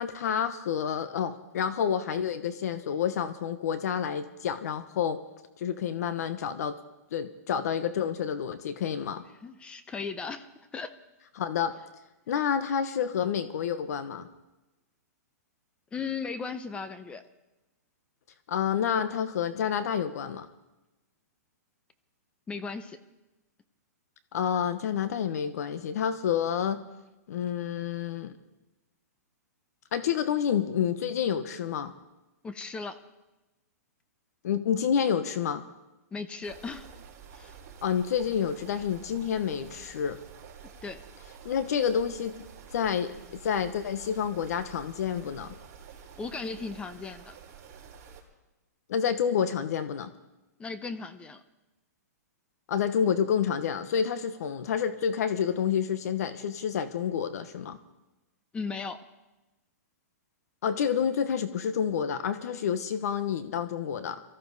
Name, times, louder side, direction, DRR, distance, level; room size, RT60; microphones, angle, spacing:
voice 1, 0.0-5.2 5.6-6.7 7.1-9.2 11.4-11.8 12.3-14.3 18.5-20.5 24.3-26.8 27.3-28.3 29.9-31.9 34.4-35.6 37.8-40.2 41.4-45.6 48.9-50.1 52.7-57.8 60.6-64.2, left 8 dB, 65° left, 11 dB, 1.0 m, -29 dB
voice 2, 9.4-10.5 10.7-10.9 15.9-17.2 22.5-23.0 32.4-33.0 36.1-36.9 37.3-37.6 40.8-41.0 46.2-47.4 50.6-51.4 58.5-59.0, left 4 dB, 10° left, 11 dB, 0.7 m, -36 dB
sound 1, 36.4-48.2, right 7 dB, 30° right, 4.2 m, -49 dB
23.5 x 14.0 x 4.1 m, 1.0 s
hypercardioid pair, 150°, 9 cm